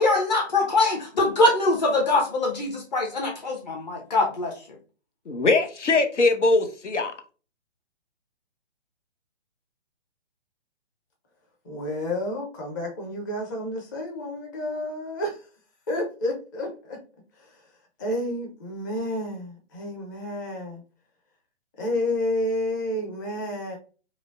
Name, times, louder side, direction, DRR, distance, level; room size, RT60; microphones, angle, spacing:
voice 1, 0.0-4.5, left 2 dB, 35° left, 1 dB, 0.9 m, -23 dB
voice 2, 5.3-7.1, left 3 dB, 80° left, 6 dB, 0.8 m, -21 dB
voice 3, 11.6-15.5 15.9-17.0 17.4-17.6 18.0-20.8 21.8-23.8, left 1 dB, 15° left, 2 dB, 0.6 m, -30 dB
4.8 x 2.1 x 2.4 m, 0.35 s
figure-of-eight pair, 135°, 35 cm